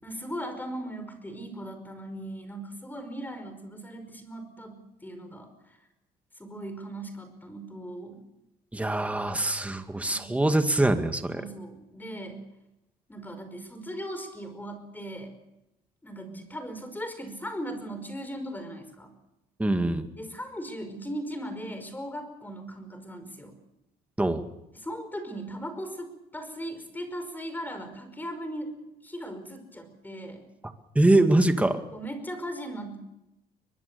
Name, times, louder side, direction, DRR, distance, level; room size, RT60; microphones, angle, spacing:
voice 1, 0.0-5.8 6.4-8.2 10.1-10.3 11.4-12.5 13.1-15.3 16.0-19.1 20.1-23.6 24.8-28.7 29.0-30.4 31.9-33.0, equal, 10° left, 8 dB, 5.1 m, -38 dB
voice 2, 8.7-11.4 19.6-20.1 24.2-24.4 31.0-31.8, right 2 dB, 10° right, 7 dB, 2.0 m, -23 dB
22.5 x 22.5 x 6.9 m, 0.92 s
cardioid pair, 110°, 17 cm